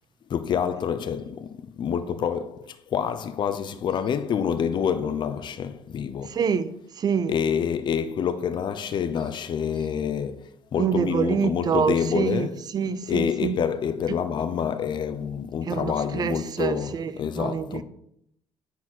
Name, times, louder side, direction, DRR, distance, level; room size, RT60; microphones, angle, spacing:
voice 1, 0.3-6.4 7.3-12.6 13.1-16.9 17.2-17.8, left 7 dB, 55° left, 0.8 m, -27 dB
voice 2, 6.3-7.3 10.8-12.5 12.7-13.6 15.7-17.8, right 7 dB, 45° right, 0.7 m, -26 dB
10.0 x 4.4 x 4.5 m
cardioid pair, 85°, 10 cm